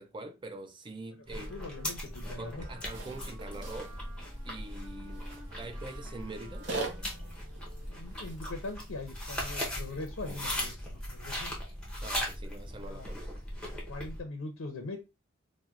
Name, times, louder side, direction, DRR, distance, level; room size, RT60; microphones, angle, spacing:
voice 1, 0.0-1.5 2.4-3.9 4.4-5.3 5.6-7.1 12.0-13.3, right 2 dB, 20° right, 0.3 m, -44 dB
voice 2, 1.3-2.7 7.9-11.5 12.8-13.1 13.7-15.0, left 2 dB, 80° left, 0.5 m, -42 dB
sound 1, 1.3-14.2, left 1 dB, 5° left, 0.7 m, -39 dB
Wind instrument woodwind instrument, 1.3-8.0, right 1 dB, 85° right, 1.0 m, -54 dB
sound 2, 2.9-9.0, right 3 dB, 55° right, 0.7 m, -44 dB
4.4 x 2.1 x 2.4 m
head